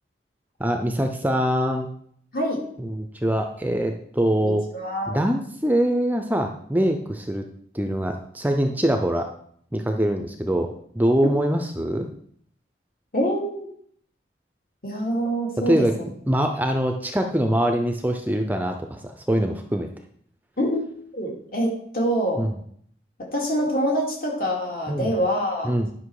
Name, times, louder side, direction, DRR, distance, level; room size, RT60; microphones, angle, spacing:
voice 1, 0.6-1.9 2.8-4.7 5.1-7.4 7.7-9.3 9.7-12.1 15.7-15.9 16.3-19.9 22.4-22.5 24.9-25.1 25.6-25.9, right 1 dB, 10° right, 5 dB, 0.5 m, -23 dB
voice 2, 4.4-5.2 13.1-13.7 14.8-15.9 20.6-20.8 21.1-22.4 23.2-25.7, equal, 50° left, -1 dB, 2.7 m, -25 dB
10.5 x 5.9 x 4.8 m, 0.64 s
head